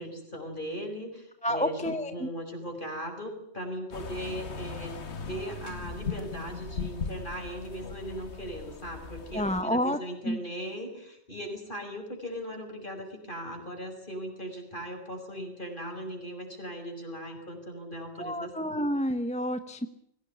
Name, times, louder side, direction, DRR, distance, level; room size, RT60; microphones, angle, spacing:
voice 1, 0.0-5.0 5.2-18.5, equal, 50° left, 4 dB, 6.1 m, -38 dB
voice 2, 1.4-2.3 9.3-10.0 10.2-10.4 18.2-19.9, equal, 5° left, 9 dB, 1.1 m, -29 dB
sound 1, 3.9-9.6, left 4 dB, 80° left, 1.7 m, -38 dB
22.0 x 18.0 x 9.9 m, 0.74 s
omnidirectional pair, 1.1 m